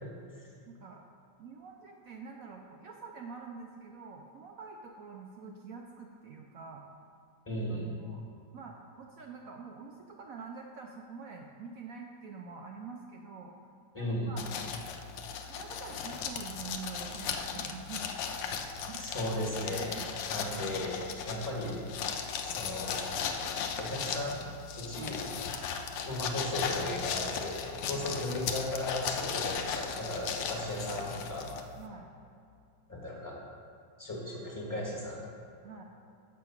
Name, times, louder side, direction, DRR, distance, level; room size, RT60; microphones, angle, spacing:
voice 1, 0.0-0.5 7.4-8.0 13.9-14.3 19.0-20.0 20.3-21.0 21.2-21.8 22.4-23.5 23.8-24.5 24.7-25.2 26.0-31.5 32.9-33.4 34.0-35.2, left 1 dB, 10° left, -4 dB, 1.5 m, -36 dB
voice 2, 0.7-1.0 1.4-6.8 7.7-8.2 8.5-13.5 14.0-14.4 15.4-18.1 18.9-19.0 19.7-20.1 21.3-21.5 25.0-25.2 27.9-28.2 31.8-32.1 35.6-35.8, right 5 dB, 75° right, 1 dB, 0.7 m, -46 dB
sound 1, 14.4-31.9, left 6 dB, 75° left, 1.3 m, -37 dB
7.3 x 6.1 x 5.9 m, 2.4 s
omnidirectional pair, 2.1 m